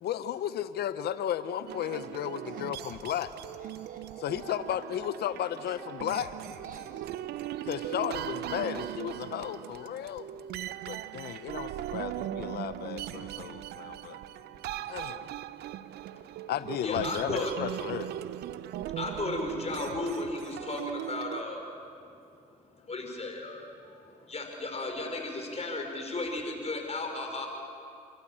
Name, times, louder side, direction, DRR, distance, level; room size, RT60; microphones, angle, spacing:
voice 1, 0.0-3.3 4.2-6.3 7.6-10.3 10.9-14.2 14.9-15.3 16.5-18.1, left 10 dB, 80° left, 13 dB, 0.7 m, -34 dB
sound 1, 1.7-21.4, right 12 dB, 90° right, 0.5 m, -39 dB
voice 2, 1.8-4.5 5.6-5.7 6.1-7.1, right 2 dB, 55° right, 1 dB, 6.2 m, -51 dB
voice 3, 16.8-17.5 19.0-21.7 22.9-23.6 24.3-27.5, left 2 dB, 40° left, 2 dB, 5.3 m, -34 dB
30.0 x 13.0 x 8.8 m, 2.6 s
supercardioid pair, 55°, 16 cm